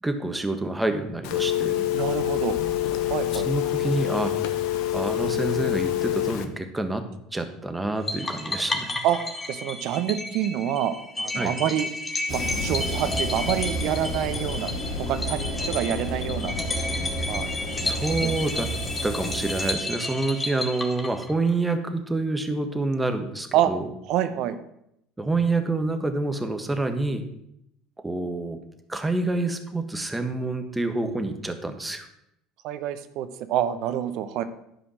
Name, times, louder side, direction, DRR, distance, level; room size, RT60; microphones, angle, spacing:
voice 1, 0.0-1.9 3.0-4.3 4.9-7.0 7.3-9.0 11.4-11.5 17.8-18.7 19.0-23.9 25.2-27.3 28.0-28.6 28.9-32.1, right 2 dB, 10° right, 7 dB, 1.5 m, -27 dB
Telephone, 1.2-6.4, left 13 dB, 65° left, 1.0 m, -26 dB
voice 2, 1.9-2.6 3.1-3.5 9.0-9.2 9.5-11.9 12.3-14.7 15.0-16.5 17.3-17.5 18.2-18.3 23.5-23.7 24.1-24.6 32.6-34.4, right 11 dB, 60° right, 11 dB, 0.9 m, -27 dB
sound 1, 8.1-21.5, left 2 dB, 20° left, 1.8 m, -32 dB
sound 2, 12.3-19.7, equal, 50° left, 2.3 m, -31 dB
11.5 x 5.1 x 6.4 m, 0.78 s
hypercardioid pair, 70°, 0 cm